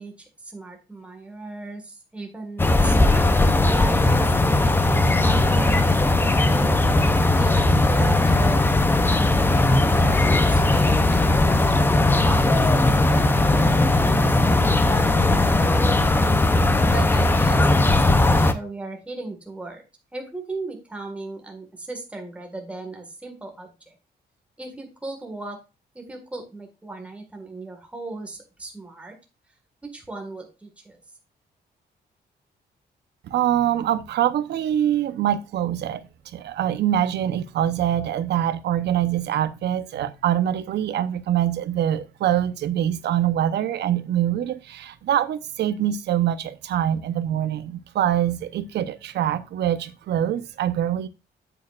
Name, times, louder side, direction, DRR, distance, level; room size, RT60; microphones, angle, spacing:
voice 1, 0.0-4.8 5.0-7.0 7.3-16.3 16.9-19.8 20.1-23.9 24.6-25.6 26.0-29.2 29.8-31.0, right 3 dB, 5° right, 1.8 m, -37 dB
sound 1, 2.6-18.5, left 2 dB, 10° left, 0.7 m, -18 dB
voice 2, 33.2-36.0 36.3-51.1, right 11 dB, 80° right, 0.9 m, -24 dB
8.8 x 8.2 x 2.5 m
wide cardioid pair, 175°, 17 cm